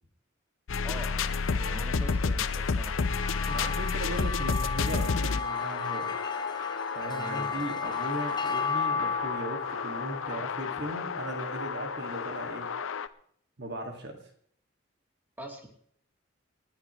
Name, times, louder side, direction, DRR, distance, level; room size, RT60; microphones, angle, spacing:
sound 1, 0.7-13.1, left 5 dB, 80° left, 0.7 m, -31 dB
voice 1, 0.8-3.7 7.1-7.7 15.4-15.7, right 1 dB, 10° right, 0 dB, 2.9 m, -44 dB
sound 2, 2.8-11.4, left 5 dB, 20° left, 1.0 m, -34 dB
voice 2, 3.5-6.1 6.9-12.7 13.6-14.2, right 1 dB, 60° right, 3 dB, 2.0 m, -37 dB
29.0 x 10.0 x 3.1 m, 0.62 s
head